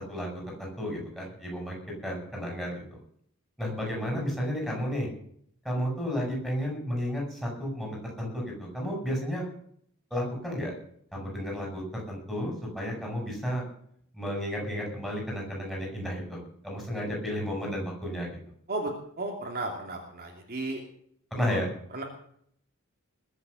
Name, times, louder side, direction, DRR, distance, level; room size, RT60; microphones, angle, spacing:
voice 1, 0.1-1.8 2.0-2.8 3.6-5.1 5.6-9.5 10.1-10.7 11.1-13.6 14.1-18.3 21.3-21.7, equal, ahead, -2 dB, 7.6 m, -32 dB
voice 2, 19.2-20.8 21.9-22.0, right 2 dB, 45° right, 1 dB, 2.7 m, -33 dB
21.0 x 8.3 x 7.0 m, 0.65 s
head